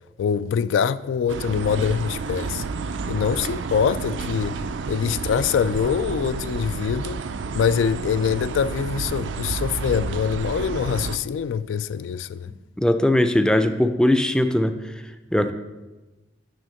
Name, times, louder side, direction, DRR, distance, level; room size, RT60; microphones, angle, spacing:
voice 1, 0.2-2.6 3.1-4.6 4.9-7.2 7.5-12.5, left 7 dB, 85° left, 0.3 m, -24 dB
sound 1, 1.3-11.2, right 4 dB, 75° right, 0.4 m, -30 dB
voice 2, 12.8-14.8 15.3-15.5, left 1 dB, 5° left, 0.4 m, -19 dB
9.0 x 3.5 x 6.4 m
head